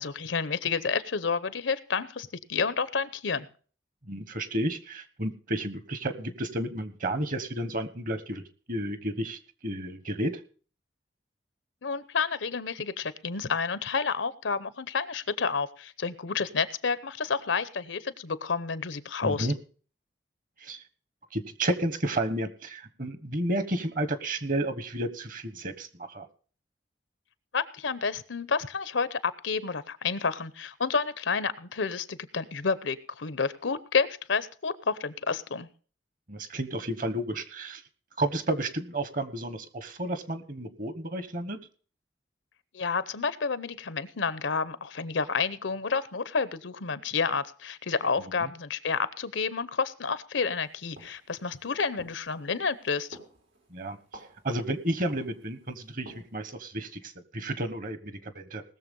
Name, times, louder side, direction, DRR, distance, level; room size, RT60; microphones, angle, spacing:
voice 1, 0.0-3.5 11.8-19.5 27.5-35.7 42.7-53.2, left 5 dB, 80° left, 15 dB, 0.8 m, -30 dB
voice 2, 4.1-8.4 8.7-10.4 19.2-19.5 20.6-20.8 21.3-26.3 36.3-37.8 38.2-41.6 48.4-48.5 53.7-58.6, right 1 dB, 45° right, 11 dB, 1.2 m, -32 dB
sound 1, 50.3-56.5, right 1 dB, 90° right, 4.0 m, -53 dB
19.0 x 7.0 x 5.4 m, 0.42 s
head